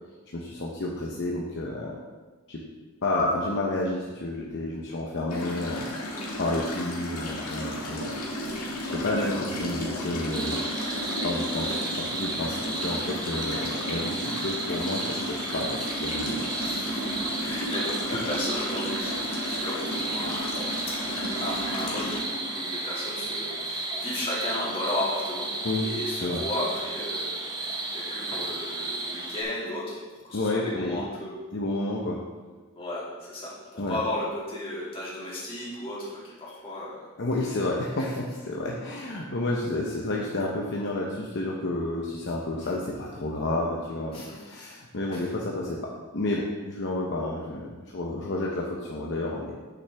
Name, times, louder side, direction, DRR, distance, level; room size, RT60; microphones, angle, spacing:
voice 1, 0.3-2.0 2.5-2.6 3.0-5.9 6.4-10.7 11.1-16.4 25.6-25.9 26.2-26.4 30.3-31.0 31.5-32.2 33.8-34.0 37.2-49.5, left 2 dB, 55° left, -2 dB, 0.8 m, -30 dB
sound 1, 5.3-22.2, equal, 85° left, 1.9 m, -33 dB
voice 2, 6.1-6.4 9.1-9.4 16.6-25.5 25.8-30.0 30.2-31.4 32.8-37.1 38.0-38.2 44.1-44.4 45.1-45.3, left 1 dB, 25° left, -7 dB, 2.4 m, -34 dB
sound 2, 10.3-29.4, right 2 dB, 20° right, 0.8 m, -33 dB
8.5 x 6.5 x 3.4 m, 1.3 s
head